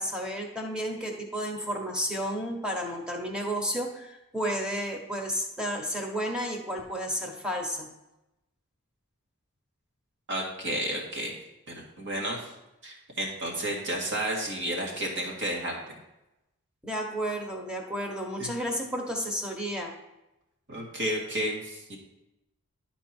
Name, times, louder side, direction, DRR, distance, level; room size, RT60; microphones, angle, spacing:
voice 1, 0.0-7.9 16.8-19.9, equal, 5° right, 1 dB, 1.2 m, -32 dB
voice 2, 10.3-11.3 11.7-12.5 12.8-16.0 18.4-18.5 20.7-22.0, right 1 dB, 55° right, -1 dB, 2.0 m, -32 dB
11.5 x 4.4 x 4.4 m, 0.93 s
head